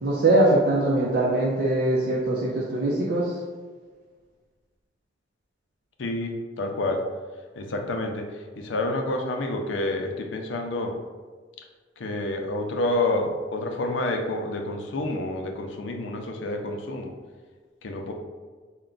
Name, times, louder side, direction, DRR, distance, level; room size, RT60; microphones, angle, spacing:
voice 1, 0.0-3.3, right 2 dB, 60° right, -5 dB, 0.6 m, -22 dB
voice 2, 6.0-7.1 7.6-11.0 12.0-17.1 17.8-18.1, left 2 dB, 80° left, 3 dB, 0.5 m, -28 dB
4.3 x 2.2 x 3.8 m, 1.5 s
head